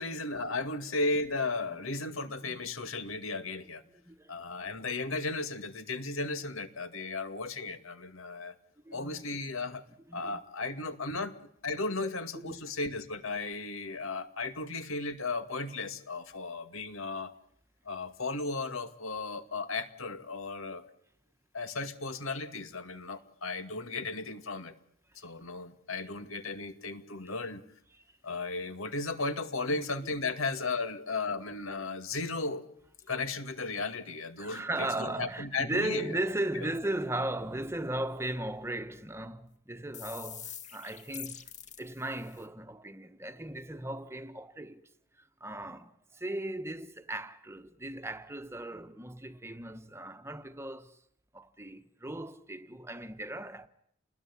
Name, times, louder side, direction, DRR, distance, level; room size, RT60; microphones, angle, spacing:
voice 1, 0.0-3.8 4.3-8.5 8.9-9.8 10.1-11.3 11.6-17.3 17.9-20.8 21.5-24.7 25.2-27.6 28.2-32.7 33.1-36.2, left 3 dB, 80° left, 2.2 m, -35 dB
voice 2, 4.0-4.4 8.8-9.2 10.1-10.4 11.1-11.3 12.0-12.1 12.3-12.7 25.5-25.6 27.9-28.2 29.7-29.8 30.2-30.3 34.4-41.4 41.8-44.8 45.2-51.0 51.3-53.7, right 1 dB, 15° right, 1.2 m, -37 dB
sound 1, 39.9-42.5, left 9 dB, 35° left, 2.3 m, -45 dB
29.0 x 20.5 x 10.0 m
head